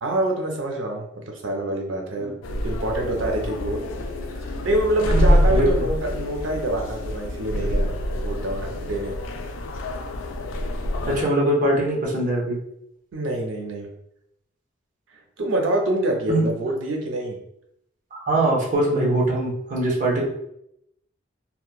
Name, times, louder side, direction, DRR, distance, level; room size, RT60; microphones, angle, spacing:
voice 1, 0.0-2.4 2.6-3.8 4.6-7.9 8.2-9.2 13.1-13.9 15.4-17.4, right 1 dB, 90° right, 2 dB, 0.6 m, -26 dB
sound 1, 2.4-11.2, equal, 85° left, 0.3 m, -25 dB
voice 2, 5.1-5.7 11.0-12.6 16.3-16.5 18.1-20.3, right 1 dB, 40° right, -3 dB, 0.7 m, -22 dB
2.9 x 2.1 x 2.3 m, 0.78 s
head